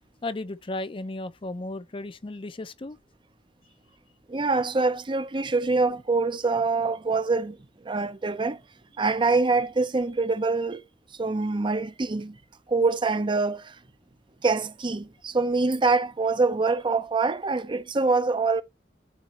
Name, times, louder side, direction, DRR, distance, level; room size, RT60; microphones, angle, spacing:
voice 1, 0.2-3.0, left 2 dB, 30° left, 0.5 m, -34 dB
voice 2, 4.3-7.6 7.8-8.6 9.0-10.8 11.2-12.4 12.7-13.8 14.4-18.6, right 3 dB, 30° right, 0.6 m, -25 dB
12.0 x 4.0 x 2.9 m
head